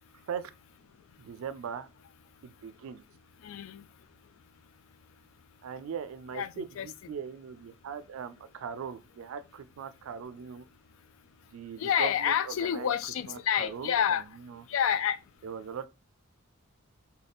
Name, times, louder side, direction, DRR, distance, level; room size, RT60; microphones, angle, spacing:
voice 1, 1.2-1.9 2.4-3.0 5.6-10.6 11.5-12.9 13.3-14.6 15.4-15.9, right 7 dB, 80° right, 0.3 m, -40 dB
voice 2, 3.4-3.8 6.3-6.9 11.8-14.2 14.7-15.2, left 8 dB, 75° left, 0.3 m, -28 dB
3.4 x 2.2 x 3.8 m
head